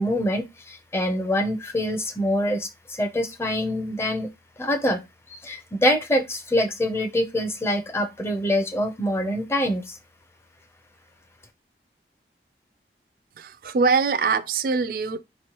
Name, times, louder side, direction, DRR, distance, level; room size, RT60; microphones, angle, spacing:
voice 1, 0.0-4.3 4.6-5.0 5.3-10.0, left 1 dB, 15° left, 0.5 m, -25 dB
voice 2, 13.4-15.2, right 5 dB, 55° right, 0.3 m, -23 dB
5.0 x 3.0 x 2.9 m
head